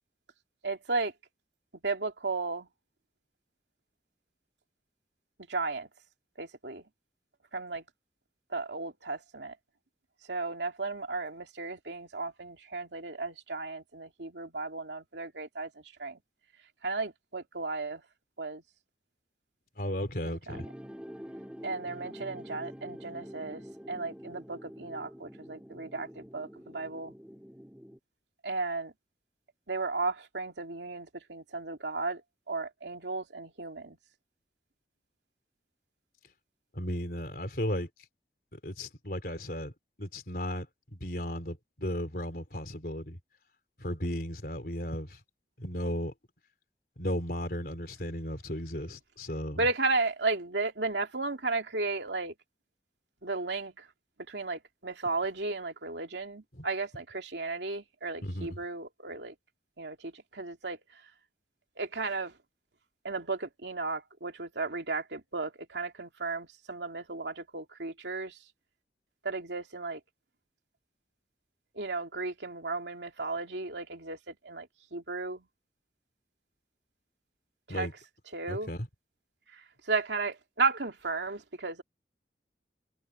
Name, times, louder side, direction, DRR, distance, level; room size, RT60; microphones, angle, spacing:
voice 1, 0.6-1.1 1.8-2.7 5.5-5.9 6.4-6.8 7.5-7.8 8.5-9.5 10.3-15.7 16.0-16.2 16.8-18.0 18.4-18.6 20.3-20.6 21.6-23.6 23.9-27.1 28.4-28.9 29.7-32.2 32.5-34.0 49.6-52.3 53.2-53.7 54.3-59.3 59.8-60.8 61.8-62.3 63.0-68.3 69.2-70.0 71.8-74.7 74.9-75.4 77.7-77.9 78.3-78.7 79.9-81.8, right 3 dB, 85° right, 2.7 m, -34 dB
voice 2, 19.8-20.7 36.7-37.9 38.5-39.7 40.0-40.7 40.9-43.2 43.8-45.2 45.6-46.1 47.0-49.7 56.5-56.7 58.2-58.6 77.7-77.9 78.5-78.9, equal, 55° left, 3.8 m, -35 dB
sound 1, 20.5-28.0, equal, 5° right, 2.4 m, -46 dB
head